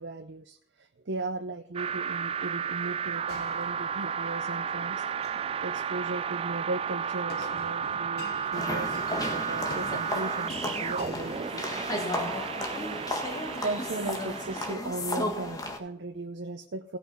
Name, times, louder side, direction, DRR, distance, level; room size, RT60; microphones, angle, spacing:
voice 1, 0.0-5.1 5.6-12.3 13.6-17.0, right 2 dB, 90° right, 7 dB, 0.7 m, -37 dB
sound 1, 1.8-14.7, right 7 dB, 30° right, 0.3 m, -33 dB
sound 2, 3.3-4.4 5.0-5.5 7.3-12.1, left 3 dB, 60° left, 1.0 m, -46 dB
sound 3, 8.5-15.8, left 1 dB, 20° left, 1.5 m, -34 dB
17.0 x 6.1 x 5.3 m, 0.71 s
head